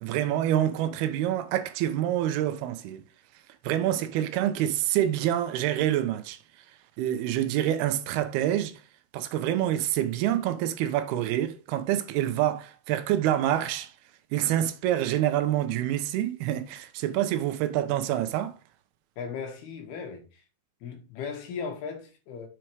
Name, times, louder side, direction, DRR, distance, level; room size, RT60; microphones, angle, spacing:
voice 1, 0.0-3.0 3.6-6.4 7.0-8.8 9.1-13.9 14.3-18.6, right 12 dB, 90° right, 2.8 m, -27 dB
voice 2, 19.2-20.4 20.8-22.5, left 6 dB, 85° left, 3.7 m, -37 dB
7.6 x 4.6 x 4.6 m
omnidirectional pair, 4.4 m